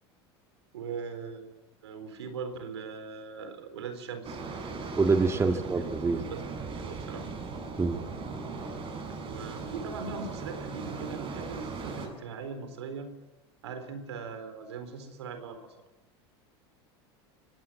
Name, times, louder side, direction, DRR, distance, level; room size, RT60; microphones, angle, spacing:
voice 1, 0.7-1.5 1.8-4.4 5.4-7.3 9.2-13.1 13.6-15.8, right 5 dB, 90° right, 9 dB, 4.1 m, -40 dB
sound 1, 4.2-12.1, right 4 dB, 40° right, 7.2 m, -38 dB
voice 2, 5.0-6.2 7.8-8.0, right 4 dB, 20° right, 6 dB, 1.9 m, -25 dB
24.5 x 17.5 x 7.6 m, 1.1 s
hypercardioid pair, 100°, 14 cm